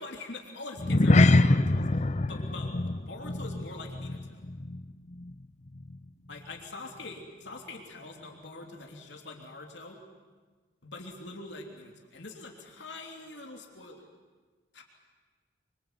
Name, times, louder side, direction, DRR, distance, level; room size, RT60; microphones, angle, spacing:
voice 1, 0.0-4.4 6.3-10.0 10.8-14.0 14.7-14.8, left 2 dB, 70° left, 1 dB, 3.2 m, -44 dB
sound 1, 0.8-5.4 5.7-6.0 6.4-6.5, left 2 dB, 40° left, 0.7 m, -25 dB
25.5 x 24.5 x 8.2 m, 1.4 s
head